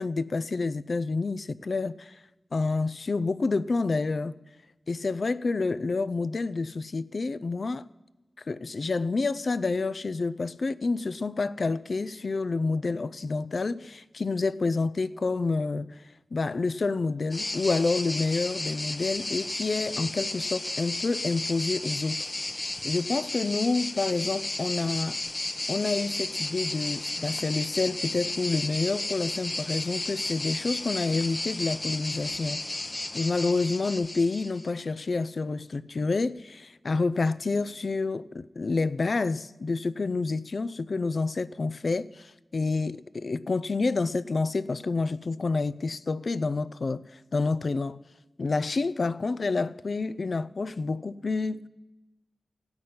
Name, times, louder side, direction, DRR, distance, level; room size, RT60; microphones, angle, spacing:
voice 1, 0.0-2.2 2.5-4.3 4.9-7.8 8.5-16.0 16.3-22.3 22.8-25.2 25.7-32.6 33.1-48.0 48.4-51.7, left 3 dB, 65° left, 0.4 m, -28 dB
sound 1, 17.3-34.7, left 2 dB, 30° left, 0.8 m, -33 dB
16.5 x 5.9 x 9.4 m
wide cardioid pair, 75°, 0 cm